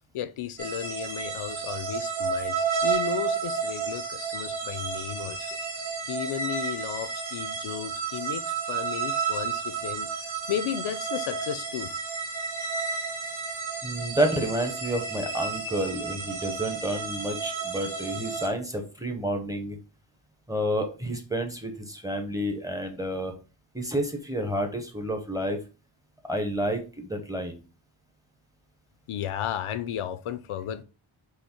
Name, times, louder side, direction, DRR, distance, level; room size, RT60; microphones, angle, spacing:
voice 1, 0.1-5.5 6.1-10.1 10.5-11.9 29.1-30.8, left 10 dB, 80° left, 0.6 m, -34 dB
sound 1, 0.6-18.5, right 5 dB, 70° right, 1.9 m, -31 dB
voice 2, 13.8-19.8 20.5-23.3 23.7-25.6 26.3-27.6, right 1 dB, 5° right, 0.6 m, -30 dB
5.6 x 2.1 x 4.3 m
wide cardioid pair, 170°, 50 cm